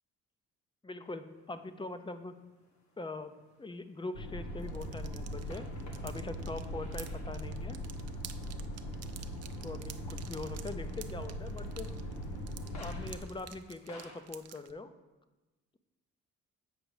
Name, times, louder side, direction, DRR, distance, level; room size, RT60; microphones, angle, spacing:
voice 1, 0.8-2.4 3.0-3.3 3.6-5.7 6.0-7.8 9.6-11.9 12.8-14.9, left 3 dB, 15° left, 10 dB, 0.5 m, -42 dB
sound 1, 1.0-14.2, left 2 dB, 65° left, 1.7 m, -60 dB
sound 2, 4.1-13.1, equal, 85° left, 1.1 m, -40 dB
sound 3, 4.6-14.7, right 10 dB, 55° right, 0.5 m, -51 dB
7.9 x 5.1 x 4.8 m, 1.1 s
cardioid pair, 90°, 30 cm